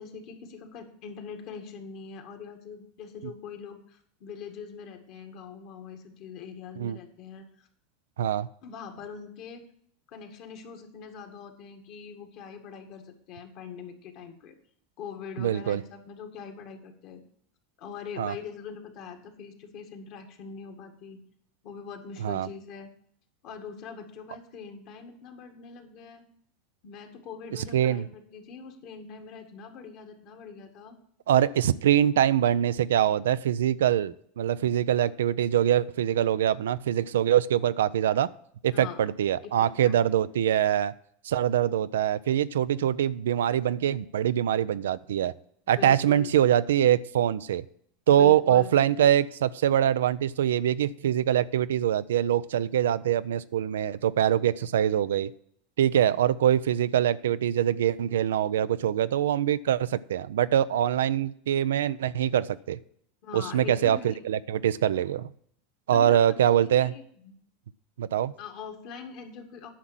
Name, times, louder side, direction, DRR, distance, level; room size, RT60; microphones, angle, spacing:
voice 1, 0.0-7.7 8.6-9.6 10.1-14.5 15.0-17.2 17.8-21.2 21.6-22.9 23.4-26.2 26.8-31.0 38.7-39.1 39.4-40.0 45.8-46.3 48.1-48.9 63.2-64.2 65.9-67.3 68.4-69.7, left 6 dB, 55° left, 5 dB, 2.0 m, -43 dB
voice 2, 15.4-15.8 18.2-18.3 22.2-22.5 27.5-28.0 31.3-38.3 38.6-40.9 41.2-45.3 45.7-47.6 48.1-55.3 55.8-62.8 63.3-65.3 65.9-66.9 68.0-68.3, right 10 dB, 80° right, 16 dB, 0.4 m, -24 dB
10.0 x 6.0 x 7.4 m, 0.65 s
hypercardioid pair, 90°, 0 cm